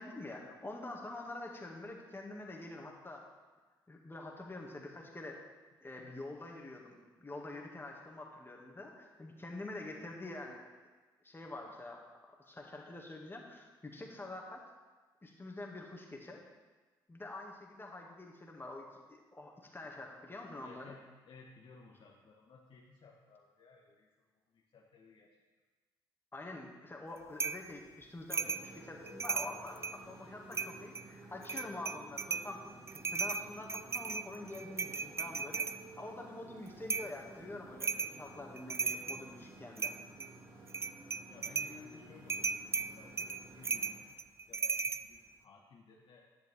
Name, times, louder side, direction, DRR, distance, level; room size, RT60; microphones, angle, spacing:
voice 1, 0.0-3.2 3.9-5.4 5.8-10.6 11.2-14.6 15.2-16.4 17.1-20.9 26.3-32.6 32.9-35.7 36.0-40.0, left 2 dB, 20° left, 0 dB, 2.2 m, -46 dB
voice 2, 20.6-25.4 40.9-46.3, left 4 dB, 45° left, -1 dB, 1.3 m, -59 dB
sound 1, 27.4-27.7 28.3-28.7 29.1-30.0 30.5-31.0 31.4-32.5 32.9-35.8 36.9-37.2 37.8-38.2 38.6-39.3 39.8-40.3 40.7-41.8 42.3-45.0, right 4 dB, 20° right, 0.4 m, -36 dB
Motorcycle, 28.3-44.0, right 2 dB, 40° right, 3.5 m, -54 dB
11.0 x 10.5 x 3.6 m, 1.3 s
figure-of-eight pair, 45°, 12 cm